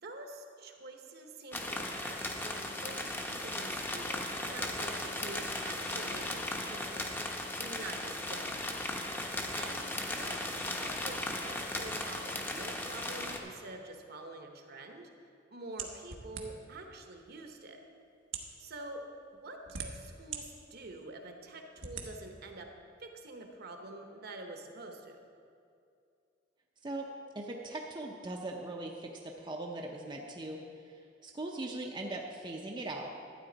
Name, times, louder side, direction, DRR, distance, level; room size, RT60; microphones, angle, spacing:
voice 1, 0.0-8.9 9.5-10.4 10.7-15.1 15.5-17.8 18.6-19.0 19.3-22.7 23.0-25.2, right 2 dB, 55° right, 3 dB, 1.1 m, -47 dB
sound 1, 1.5-13.4, left 1 dB, 10° left, 0.8 m, -37 dB
sound 2, 15.8-16.8 17.6-17.7 18.2-18.6 19.3-20.4 20.9-21.0 21.8-22.1, right 6 dB, 90° right, 1.1 m, -41 dB
voice 2, 27.3-33.1, right 2 dB, 25° right, 0 dB, 0.6 m, -40 dB
12.5 x 9.2 x 4.0 m, 2.5 s
head